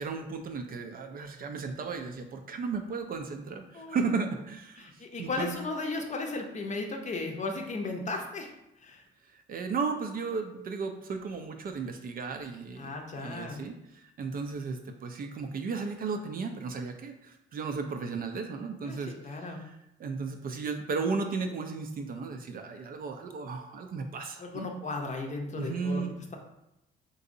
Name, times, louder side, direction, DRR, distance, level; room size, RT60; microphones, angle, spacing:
voice 1, 0.0-4.9 5.2-5.6 9.2-24.7 25.6-26.2, right 4 dB, 45° right, 6 dB, 0.4 m, -35 dB
voice 2, 4.8-8.5 8.8-9.0 12.8-13.6 18.8-19.0 19.2-19.6 24.4-26.0, left 3 dB, 35° left, 2 dB, 0.6 m, -35 dB
3.8 x 2.6 x 2.6 m, 0.85 s
cardioid pair, 90°, 20 cm